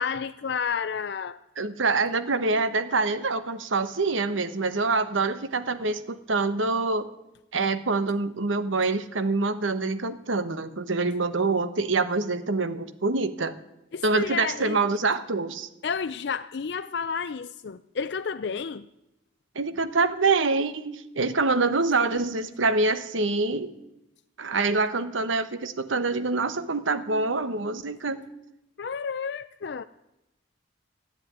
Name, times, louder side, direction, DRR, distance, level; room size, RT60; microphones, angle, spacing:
voice 1, 0.0-1.4 13.9-14.8 15.8-18.9 28.8-29.8, left 6 dB, 60° left, 11 dB, 0.4 m, -31 dB
voice 2, 1.6-7.1 7.5-13.5 14.0-15.7 19.5-23.7 24.4-28.2, right 3 dB, 85° right, 11 dB, 1.1 m, -25 dB
14.0 x 9.6 x 9.2 m, 0.89 s
head